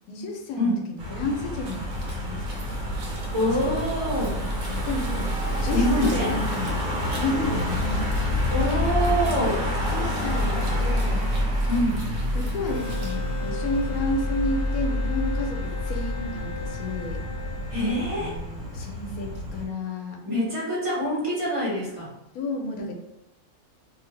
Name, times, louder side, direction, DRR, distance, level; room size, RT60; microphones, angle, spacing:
voice 1, 0.1-1.8 2.2-2.6 3.6-3.8 4.7-5.3 5.6-6.8 7.2-8.1 9.9-11.3 12.3-17.2 18.1-20.2 22.3-22.9, left 2 dB, 75° left, 2 dB, 1.1 m, -31 dB
Car passing by / Engine, 1.0-19.7, left 1 dB, 90° right, 1.3 m, -28 dB
sound 1, 1.7-13.2, right 3 dB, 70° right, 1.1 m, -46 dB
voice 2, 3.3-4.4 5.7-6.4 8.5-9.6 11.7-12.0 17.7-18.3 20.2-22.1, equal, 25° right, -6 dB, 1.0 m, -25 dB
sound 2, 12.7-19.1, left 5 dB, 50° left, 0.9 m, -39 dB
2.8 x 2.7 x 3.1 m, 0.89 s
omnidirectional pair, 1.6 m